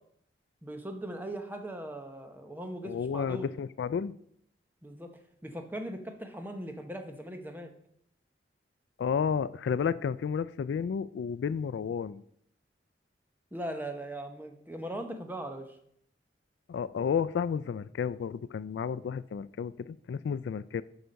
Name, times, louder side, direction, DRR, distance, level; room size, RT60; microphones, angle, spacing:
voice 1, 0.6-3.5 4.8-5.1 5.4-7.7 13.5-15.8, right 1 dB, 10° right, 6 dB, 0.8 m, -39 dB
voice 2, 2.8-4.2 9.0-12.2 16.7-20.8, left 6 dB, 80° left, 16 dB, 0.3 m, -32 dB
8.1 x 5.7 x 5.2 m, 0.70 s
head